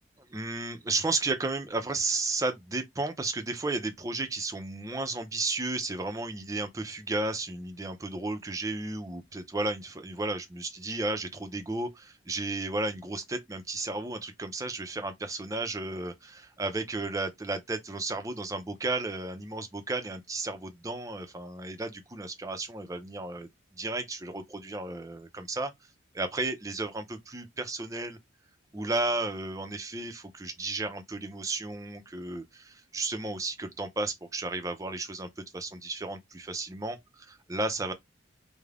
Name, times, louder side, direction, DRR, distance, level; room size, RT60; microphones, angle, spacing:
voice 1, 0.3-25.7 26.1-28.2 28.7-37.9, right 2 dB, 15° right, 0.4 m, -33 dB
2.4 x 2.0 x 3.2 m
head